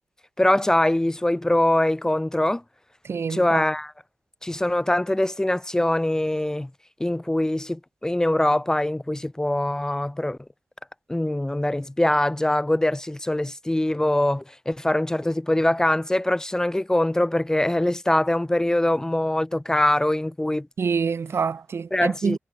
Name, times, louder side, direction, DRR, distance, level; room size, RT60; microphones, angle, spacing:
voice 1, 0.4-2.6 3.3-3.9 4.4-6.7 7.0-10.4 11.1-20.7 21.9-22.4, left 1 dB, 15° left, 1.5 m, -23 dB
voice 2, 3.0-3.6 20.8-22.4, right 5 dB, 75° right, 3.4 m, -26 dB
wide cardioid pair, 90°, 4 cm